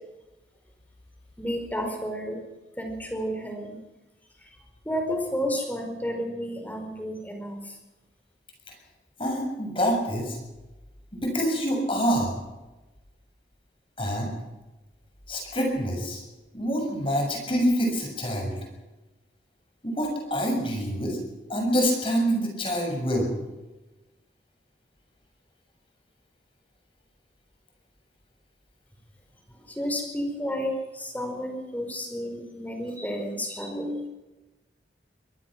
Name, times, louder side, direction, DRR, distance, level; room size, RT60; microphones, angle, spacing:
voice 1, 1.4-2.4 2.8-3.8 4.8-7.7 29.7-34.1, equal, 10° left, 3 dB, 4.8 m, -31 dB
voice 2, 9.2-10.4 11.2-12.4 14.0-14.3 15.3-16.2 16.5-18.6 19.8-21.2 21.5-23.3, equal, 30° left, 2 dB, 7.2 m, -26 dB
24.0 x 18.0 x 6.1 m, 1.1 s
head